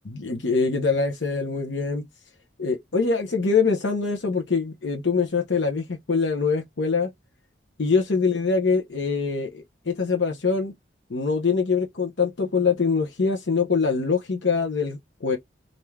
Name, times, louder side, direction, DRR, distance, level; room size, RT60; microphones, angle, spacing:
voice 1, 0.2-2.0 2.6-7.1 7.8-10.7 11.1-15.4, left 4 dB, 80° left, 0.8 m, -24 dB
3.2 x 2.6 x 2.2 m
head